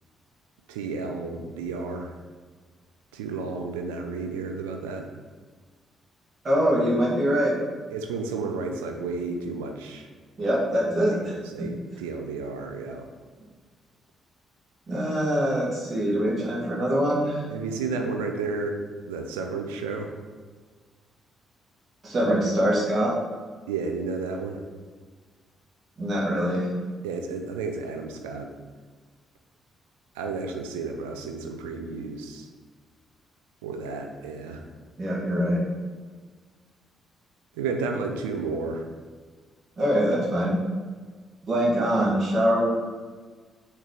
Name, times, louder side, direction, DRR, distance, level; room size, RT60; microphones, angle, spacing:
voice 1, 0.7-2.2 3.1-5.1 7.9-10.1 11.1-13.1 17.5-18.8 19.1-20.1 23.7-24.6 27.0-28.5 30.1-32.5 33.6-34.6 37.5-38.9, right 4 dB, 70° right, 3 dB, 0.5 m, -32 dB
voice 2, 6.4-7.6 10.4-11.4 14.9-17.4 22.0-23.1 26.0-26.7 35.0-35.6 39.8-40.6 41.4-42.7, equal, 40° right, -4 dB, 1.8 m, -23 dB
6.3 x 3.3 x 4.8 m, 1.5 s
figure-of-eight pair, 40°, 0 cm